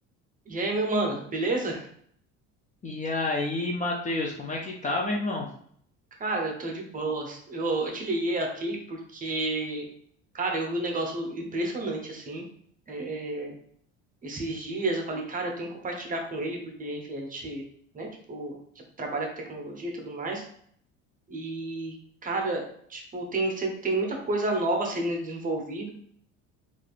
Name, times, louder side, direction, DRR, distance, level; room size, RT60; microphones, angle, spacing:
voice 1, 0.5-1.9 6.2-9.9 10.3-12.4 12.9-13.5 14.2-17.6 17.9-18.5 19.0-20.4 21.3-22.0 22.2-25.9, right 2 dB, 25° right, 1 dB, 0.7 m, -30 dB
voice 2, 2.8-5.5, left 2 dB, 25° left, 0 dB, 0.5 m, -29 dB
3.3 x 2.5 x 2.4 m, 0.63 s
supercardioid pair, 105°, 30 cm